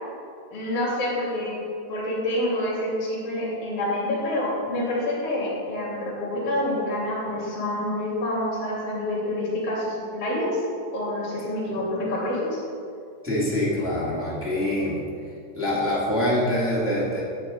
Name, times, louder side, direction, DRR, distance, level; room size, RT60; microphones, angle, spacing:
voice 1, 0.5-1.6 1.9-10.6 10.9-12.6, left 1 dB, 50° left, -7 dB, 4.1 m, -27 dB
voice 2, 13.2-15.0 15.5-17.2, left 1 dB, 5° right, -7 dB, 1.6 m, -24 dB
11.0 x 7.5 x 5.0 m, 2.4 s
omnidirectional pair, 3.3 m